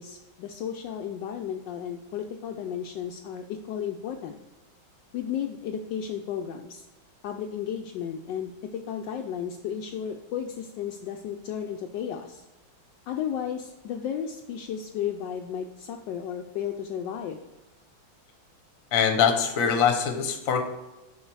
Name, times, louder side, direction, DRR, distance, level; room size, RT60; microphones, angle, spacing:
voice 1, 0.0-4.4 5.1-6.8 7.2-12.4 13.1-17.4, left 8 dB, 75° left, 3 dB, 1.2 m, -34 dB
voice 2, 18.9-20.7, left 7 dB, 50° left, 6 dB, 1.2 m, -23 dB
7.2 x 5.5 x 4.6 m, 1.1 s
omnidirectional pair, 2.2 m